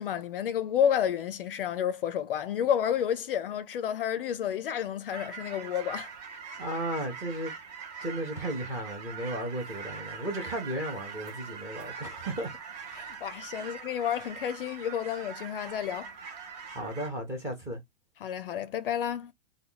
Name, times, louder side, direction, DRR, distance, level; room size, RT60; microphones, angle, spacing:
voice 1, 0.0-6.1 12.9-16.1 18.2-19.3, left 9 dB, 50° left, 0.4 m, -30 dB
sound 1, 5.1-17.1, right 6 dB, 35° right, 0.8 m, -42 dB
voice 2, 6.6-7.5 8.0-12.5 13.5-13.7 16.7-17.8, right 1 dB, 10° right, 0.6 m, -34 dB
2.9 x 2.2 x 3.7 m
hypercardioid pair, 165°, 36 cm